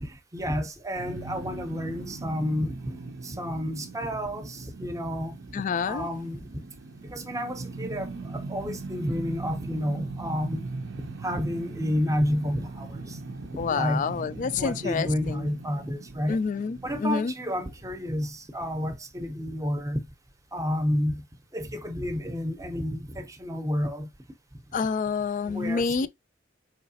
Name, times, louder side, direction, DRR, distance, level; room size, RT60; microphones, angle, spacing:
voice 1, 0.0-3.0 3.2-5.4 5.9-6.6 7.0-10.7 11.0-13.2 13.5-14.1 14.6-16.4 16.8-20.1 20.5-21.2 21.5-24.1 25.5-26.1, equal, 15° right, 0.6 m, -30 dB
sound 1, 1.0-18.2, right 3 dB, 65° right, 0.5 m, -40 dB
voice 2, 5.5-6.1 13.6-15.5 16.3-17.3 24.7-26.1, left 5 dB, 40° left, 0.3 m, -28 dB
4.7 x 3.1 x 2.7 m
head